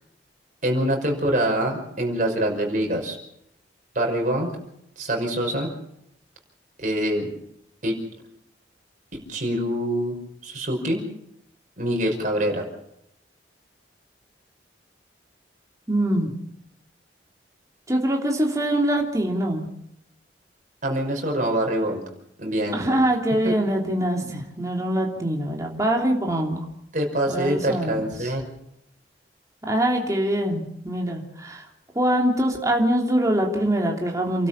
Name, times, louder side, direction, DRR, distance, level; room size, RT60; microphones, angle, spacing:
voice 1, 0.6-3.2 3.9-4.5 5.0-5.7 6.8-7.3 7.8-8.0 9.1-10.2 10.4-11.0 11.8-12.6 20.8-22.0 22.4-23.0 23.4-23.5 26.9-28.4, right 1 dB, 45° right, 1 dB, 5.7 m, -25 dB
voice 2, 15.9-16.3 17.9-19.7 22.7-26.6 27.3-28.0 29.6-31.7 31.9-34.5, right 1 dB, 20° right, 0 dB, 3.2 m, -23 dB
29.0 x 13.0 x 7.2 m, 0.76 s
head